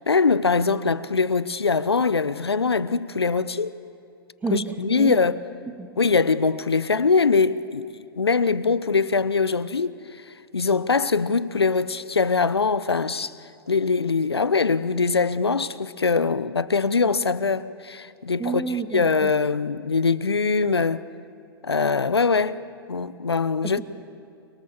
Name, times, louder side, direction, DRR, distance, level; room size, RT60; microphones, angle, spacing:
voice 1, 0.1-3.7 4.5-5.4 6.0-7.8 8.2-10.0 10.5-13.3 13.7-18.6 18.9-21.0 21.6-22.6 22.9-23.8, left 4 dB, 90° left, 0.9 m, -22 dB
voice 2, 4.4-5.2 5.8-5.9 18.4-19.3 23.6-23.8, right 5 dB, 15° right, 2.4 m, -29 dB
30.0 x 24.0 x 7.2 m
hypercardioid pair, 105°, 13 cm